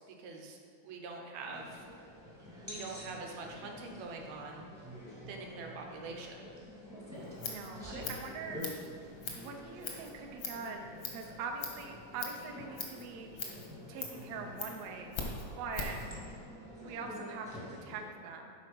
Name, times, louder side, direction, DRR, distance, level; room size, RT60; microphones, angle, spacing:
voice 1, 0.0-1.9 2.6-4.7 5.3-6.4, right 3 dB, 70° right, 1 dB, 1.9 m, -44 dB
sound 1, 1.5-18.0, left 1 dB, 15° right, 0.5 m, -48 dB
Scissors, 7.1-16.1, left 5 dB, 80° left, 1.0 m, -43 dB
voice 2, 7.4-8.6 9.3-13.3 13.9-15.1 15.6-16.0 16.8-18.5, right 4 dB, 85° right, 3 dB, 1.4 m, -43 dB
10.5 x 4.1 x 5.3 m, 2.2 s
omnidirectional pair, 3.8 m